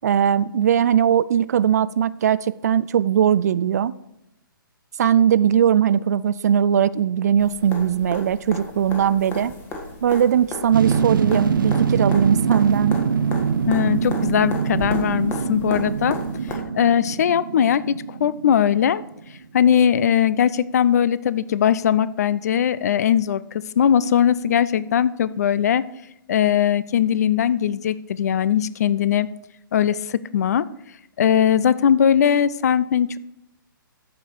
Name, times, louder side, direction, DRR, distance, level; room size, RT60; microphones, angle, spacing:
voice 1, 0.0-3.9 5.0-9.5 10.0-13.0, right 9 dB, 50° right, 18 dB, 0.4 m, -19 dB
sound 1, 7.4-16.5 18.5-18.6, left 2 dB, 15° left, 1.4 m, -35 dB
sound 2, 10.7-19.3 19.6-19.7, right 6 dB, 70° right, 0.7 m, -24 dB
voice 2, 13.7-16.2 16.5-19.0 19.5-25.8 26.3-29.3 29.7-30.7 31.2-33.2, left 9 dB, 45° left, 18 dB, 0.4 m, -20 dB
13.5 x 5.3 x 4.6 m, 0.82 s
figure-of-eight pair, 125°, 12 cm